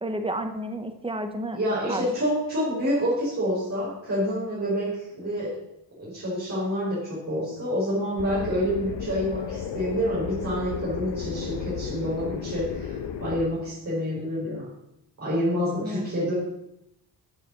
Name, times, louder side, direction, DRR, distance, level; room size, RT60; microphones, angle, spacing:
voice 1, 0.0-1.6 1.9-2.1 15.8-16.1, right 1 dB, 15° right, 7 dB, 1.1 m, -31 dB
voice 2, 1.5-5.6 6.0-14.7 15.2-16.3, equal, 40° right, -8 dB, 4.9 m, -28 dB
sound 1, 8.2-13.5, left 7 dB, 75° left, 1.1 m, -34 dB
8.9 x 7.0 x 6.4 m, 0.84 s
cardioid pair, 105°, 41 cm